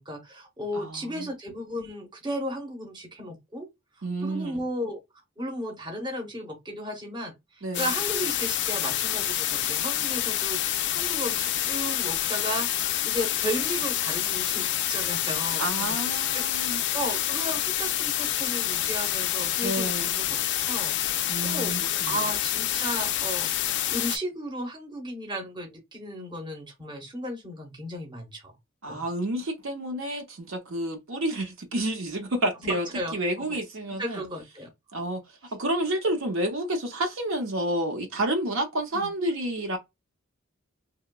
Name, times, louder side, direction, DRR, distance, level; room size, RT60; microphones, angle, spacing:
voice 1, 0.0-3.7 4.2-5.0 5.4-20.4 20.7-20.9 21.4-28.5 28.9-29.1 32.6-33.2 33.5-33.6 34.0-34.7 38.9-39.1, equal, 20° right, 0.9 m, -35 dB
voice 2, 0.8-1.3 4.0-4.6 7.6-7.9 15.6-16.8 19.6-20.1 21.3-22.2 28.8-32.9 33.1-34.2 34.9-35.2 35.5-39.8, right 1 dB, 70° right, 0.7 m, -30 dB
sound 1, 7.7-24.2, left 12 dB, 55° left, 0.3 m, -27 dB
2.9 x 2.1 x 2.2 m
head